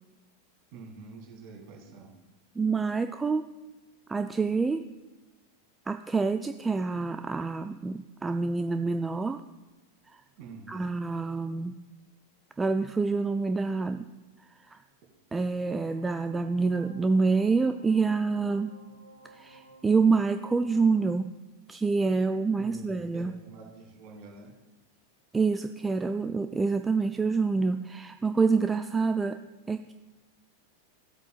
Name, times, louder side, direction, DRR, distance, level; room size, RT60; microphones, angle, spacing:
voice 1, 0.7-2.2 10.4-11.0 22.6-24.5, right 4 dB, 40° right, 0 dB, 2.5 m, -46 dB
voice 2, 2.6-3.5 4.1-4.8 5.9-9.4 10.1-10.2 10.7-11.8 12.6-14.1 14.6-14.8 15.3-18.7 19.3-21.3 21.7-23.3 25.3-29.4 29.7-29.9, right 4 dB, 10° right, 8 dB, 0.3 m, -27 dB
sound 1, 15.9-21.2, right 2 dB, 85° left, 1.0 m, -54 dB
14.5 x 8.1 x 2.4 m, 1.1 s
figure-of-eight pair, 90°, 0 cm